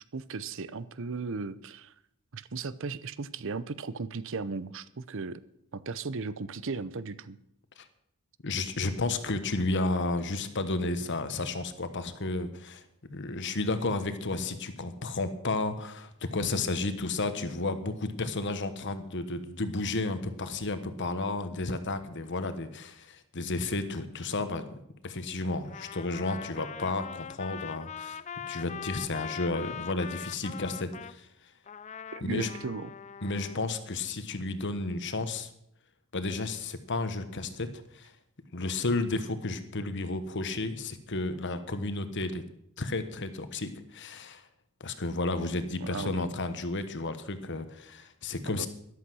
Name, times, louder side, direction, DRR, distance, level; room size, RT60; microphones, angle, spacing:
voice 1, 0.1-1.9 2.3-5.4 5.7-7.4 32.1-32.9 45.8-46.3 48.4-48.7, right 4 dB, 60° right, 16 dB, 0.7 m, -36 dB
voice 2, 8.4-12.8 13.1-24.8 25.0-28.2 28.5-31.3 32.2-32.5 33.2-35.5 36.1-38.1 38.5-42.4 42.8-44.4 44.8-48.7, left 2 dB, 55° left, 10 dB, 1.2 m, -32 dB
Trumpet, 25.6-31.2 31.7-33.6, left 8 dB, 35° left, 0.4 m, -42 dB
13.5 x 11.5 x 6.2 m, 0.77 s
head